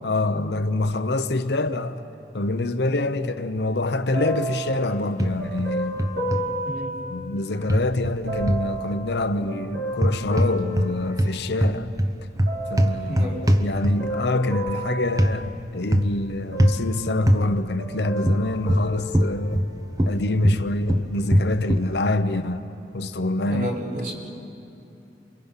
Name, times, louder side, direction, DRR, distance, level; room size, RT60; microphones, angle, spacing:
voice 1, 0.0-2.0 2.3-6.0 7.1-11.9 12.7-19.7 20.1-23.8, left 2 dB, 70° left, 0.9 m, -26 dB
sound 1, 4.1-7.7 8.3-11.8 12.5-13.1 13.7-16.1 16.5-17.5 17.8-19.8 20.5-20.6, right 1 dB, 85° right, 4.2 m, -33 dB
sound 2, 5.2-5.7 6.0-6.4 7.7-8.7 9.9-10.9 11.2-14.2 15.2-15.4 15.9-16.2 16.6-16.8 17.3-17.4 18.2-19.7 20.0-21.9, equal, 20° right, 0.8 m, -21 dB
voice 2, 23.4-24.1, equal, 50° right, 4.6 m, -31 dB
29.0 x 24.0 x 5.7 m
head